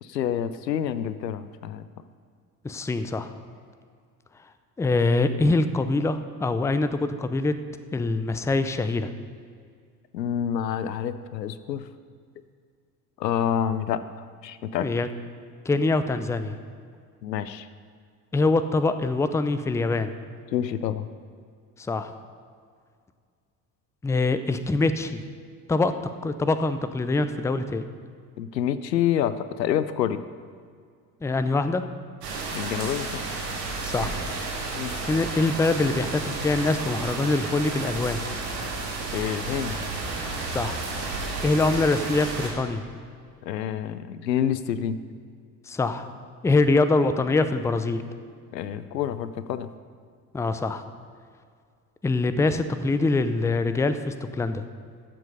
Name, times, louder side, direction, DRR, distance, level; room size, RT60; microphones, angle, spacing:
voice 1, 0.0-1.8 10.1-11.8 13.2-14.9 17.2-17.7 20.5-21.1 28.4-30.2 32.5-33.1 34.7-35.0 39.1-39.8 43.4-45.0 48.5-49.7, left 9 dB, 90° left, 13 dB, 0.6 m, -28 dB
voice 2, 2.6-3.3 4.8-7.5 7.9-9.1 14.8-15.1 15.7-16.6 18.3-20.1 21.8-22.1 24.0-25.2 25.7-25.9 26.2-27.9 31.2-31.8 33.8-34.2 35.0-38.3 40.5-40.8 41.4-42.9 45.7-46.1 46.4-48.0 50.3-50.8 52.0-54.6, left 3 dB, 5° left, 11 dB, 0.5 m, -24 dB
sound 1, 32.2-42.5, right 3 dB, 75° right, 2.4 m, -32 dB
13.0 x 7.7 x 5.4 m, 2.1 s
hypercardioid pair, 65°, 49 cm